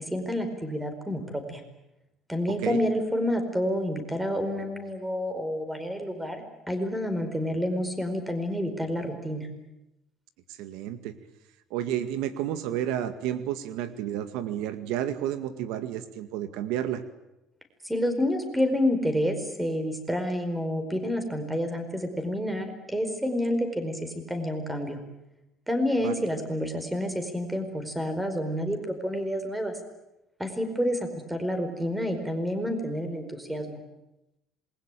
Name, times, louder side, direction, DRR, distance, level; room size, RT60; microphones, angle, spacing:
voice 1, 0.0-1.6 2.3-9.5 17.8-25.0 25.7-29.8 30.4-33.8, equal, 5° right, 8 dB, 4.7 m, -29 dB
voice 2, 10.5-11.1 11.7-17.0 26.0-26.2, right 11 dB, 80° right, 11 dB, 2.0 m, -31 dB
27.0 x 21.5 x 9.2 m, 0.91 s
cardioid pair, 140°, 0 cm